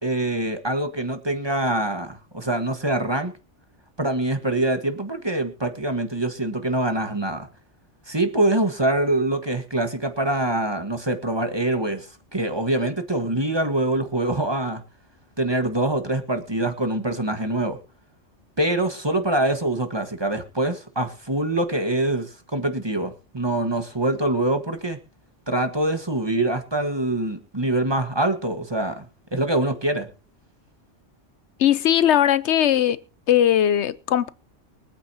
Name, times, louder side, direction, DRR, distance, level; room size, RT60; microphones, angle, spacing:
voice 1, 0.0-3.3 4.0-7.5 8.1-14.8 15.4-17.8 18.6-25.0 25.5-30.1, right 1 dB, 20° right, 1.5 m, -24 dB
voice 2, 31.6-33.0 33.3-34.3, left 10 dB, 70° left, 1.0 m, -19 dB
24.0 x 8.9 x 2.9 m
omnidirectional pair, 1.2 m